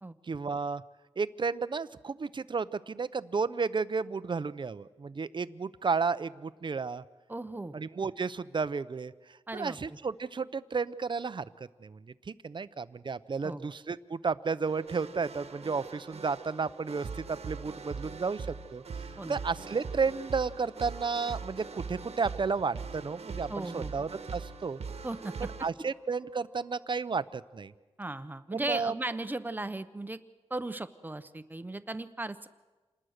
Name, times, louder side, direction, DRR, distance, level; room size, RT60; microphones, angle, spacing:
voice 1, 0.2-0.8 1.2-7.0 7.7-9.1 9.5-12.0 12.3-24.8 25.6-27.7 28.5-28.9, right 5 dB, 45° right, 15 dB, 0.7 m, -32 dB
voice 2, 7.3-7.7 9.5-9.8 13.4-13.6 19.2-19.4 23.5-23.9 25.0-25.3 28.0-30.2 30.5-32.5, right 2 dB, 15° right, 11 dB, 0.9 m, -36 dB
Wind instrument woodwind instrument, 14.5-27.9, right 1 dB, 5° left, 1.8 m, -56 dB
sound 1, 14.7-25.7, right 5 dB, 75° right, 1.3 m, -42 dB
27.5 x 20.0 x 6.6 m, 1.2 s
wide cardioid pair, 115°, 11 cm